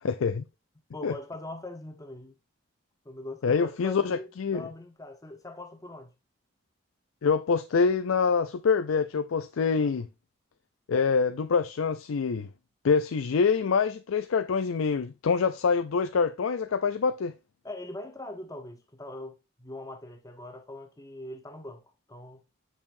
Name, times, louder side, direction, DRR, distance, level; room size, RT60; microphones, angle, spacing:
voice 1, 0.0-0.4 1.0-1.1 3.4-4.7 7.2-10.1 10.9-12.5 12.8-17.3, left 5 dB, 75° left, 0.4 m, -25 dB
voice 2, 0.9-2.3 3.0-6.1 9.7-10.0 17.6-21.8 22.1-22.4, left 1 dB, 15° left, 0.9 m, -42 dB
6.6 x 5.8 x 2.6 m
head